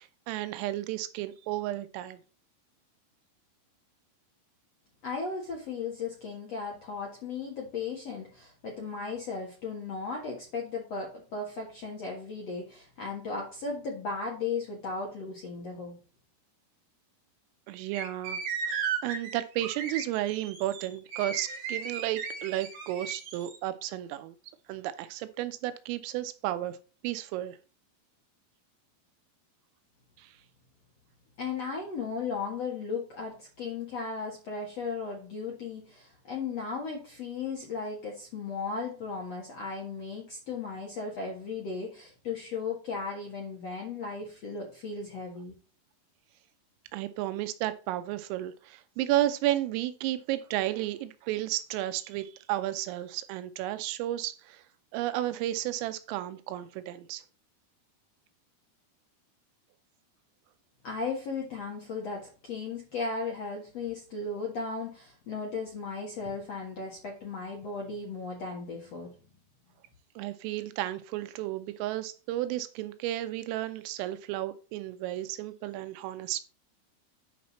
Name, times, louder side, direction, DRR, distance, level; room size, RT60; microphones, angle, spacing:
voice 1, 0.0-2.2 17.7-24.4 24.7-26.8 27.0-27.6 30.2-30.3 46.9-54.6 54.9-57.2 70.2-76.4, right 14 dB, 85° right, 3.2 m, -33 dB
voice 2, 5.0-15.9 31.4-45.5 60.8-69.1, left 4 dB, 70° left, 1.5 m, -36 dB
sound 1, 17.9-23.6, right 6 dB, 60° right, 3.6 m, -36 dB
9.4 x 5.7 x 4.1 m
omnidirectional pair, 5.9 m